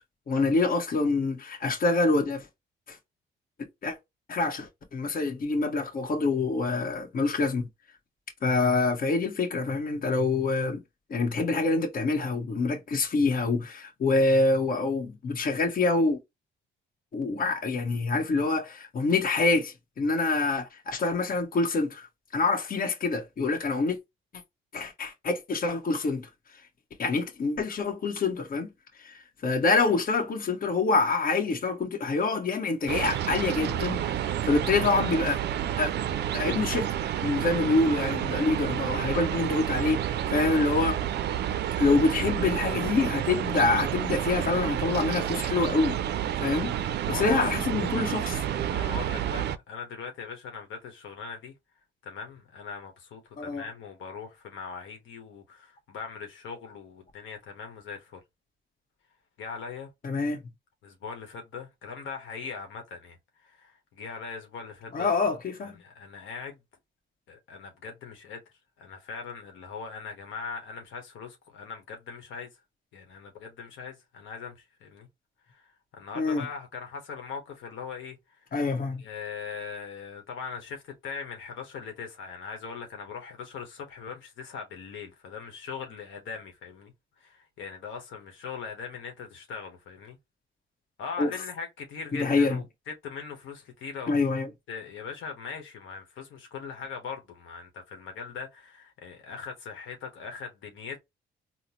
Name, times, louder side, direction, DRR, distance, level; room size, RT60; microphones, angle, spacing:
voice 1, 0.3-2.5 2.9-3.0 3.8-3.9 4.3-7.7 8.4-10.8 11.1-16.2 17.1-22.1 22.3-24.0 24.7-26.3 27.0-28.7 29.0-35.4 35.8-35.9 36.3-36.9 37.2-41.0 41.8-46.0 46.4-46.7 47.1-48.4 53.4-53.6 60.0-60.4 64.9-65.8 76.2-76.5 78.5-79.0 91.2-91.3 92.1-92.6 94.1-94.5, left 3 dB, 45° left, 1.0 m, -26 dB
sound 1, 32.9-49.6, right 10 dB, 60° right, 0.4 m, -30 dB
voice 2, 47.1-47.4 48.6-51.5 52.0-58.2 59.4-59.9 60.8-65.1 65.8-66.6 67.3-68.4 68.8-72.5 72.9-75.1 75.5-78.5 79.0-86.9 87.2-90.2 91.0-94.1 94.7-101.0, left 5 dB, 80° left, 1.0 m, -40 dB
3.8 x 2.0 x 2.8 m
cardioid pair, 90°, 20 cm